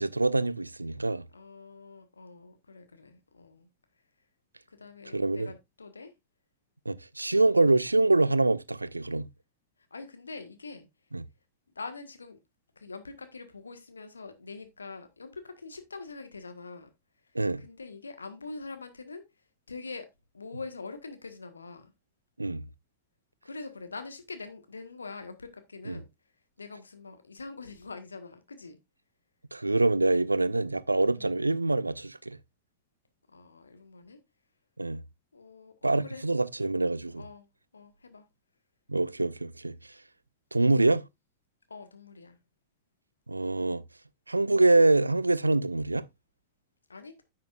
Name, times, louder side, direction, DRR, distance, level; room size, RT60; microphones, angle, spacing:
voice 1, 0.0-1.2 5.1-5.5 6.9-9.3 11.1-11.2 17.3-17.6 22.4-22.7 25.9-26.0 29.5-32.4 34.8-35.0 35.8-37.2 38.9-39.9 40.5-41.1 43.3-43.8 44.3-46.1, right 2 dB, 85° right, 0.4 m, -25 dB
voice 2, 1.3-3.7 4.7-6.1 9.9-10.9 11.7-12.4 12.7-16.9 17.6-19.2 19.7-20.1 20.3-21.9 23.4-26.1 26.6-28.8 31.1-31.4 33.3-34.2 35.3-36.2 37.1-37.5 37.7-38.2 41.7-42.4 46.9-47.1, left 4 dB, 75° left, 1.4 m, -44 dB
10.0 x 7.4 x 2.5 m
figure-of-eight pair, 90°, 0 cm